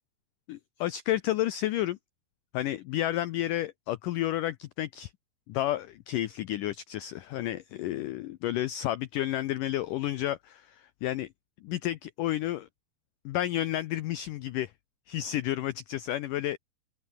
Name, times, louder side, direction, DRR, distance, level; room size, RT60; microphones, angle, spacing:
voice 1, 0.5-2.0 2.5-5.1 5.5-11.3 11.6-12.7 13.3-14.7 15.1-16.6, left 13 dB, 85° left, 1.8 m, -31 dB
open air
omnidirectional pair, 4.8 m